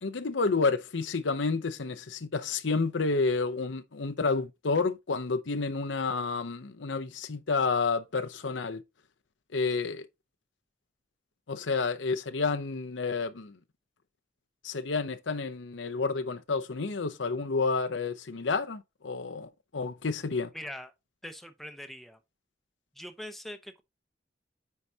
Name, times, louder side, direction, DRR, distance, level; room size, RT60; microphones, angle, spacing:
voice 1, 0.0-8.8 9.5-10.1 11.5-13.6 14.6-20.5, left 4 dB, 85° left, 0.7 m, -30 dB
voice 2, 20.5-20.9 21.2-22.2 22.9-23.8, left 1 dB, ahead, 0.8 m, -42 dB
9.5 x 4.8 x 2.8 m
head